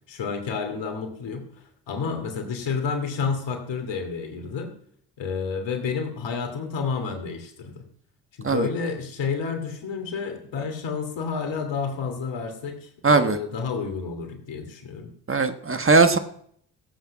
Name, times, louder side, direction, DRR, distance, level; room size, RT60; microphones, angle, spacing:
voice 1, 0.1-1.5 1.9-4.7 5.2-7.9 8.4-15.1, left 5 dB, 65° left, 6 dB, 2.8 m, -30 dB
voice 2, 13.0-13.4 15.3-16.2, right 3 dB, 25° right, 8 dB, 1.3 m, -19 dB
16.0 x 8.2 x 5.9 m, 0.66 s
hypercardioid pair, 45°, 47 cm